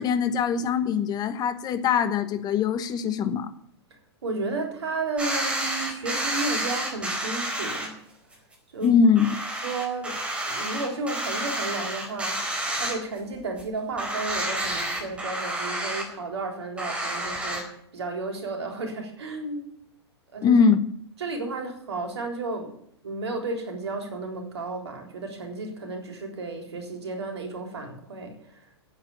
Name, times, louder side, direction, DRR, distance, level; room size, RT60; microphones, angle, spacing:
voice 1, 0.0-3.5 8.8-9.3 20.4-20.8, left 6 dB, 30° left, 11 dB, 1.3 m, -22 dB
voice 2, 4.2-7.9 8.7-9.0 9.6-19.7 20.3-20.6 21.2-22.7 23.0-28.6, right 3 dB, 75° right, 3 dB, 3.7 m, -33 dB
sound 1, 5.2-7.9 8.3-8.4 8.8-8.9 9.2-13.3 13.6-13.7 14.0-16.0 16.8-17.6, right 1 dB, 10° right, 4.4 m, -30 dB
9.4 x 8.8 x 9.3 m, 0.69 s
hypercardioid pair, 105°, 14 cm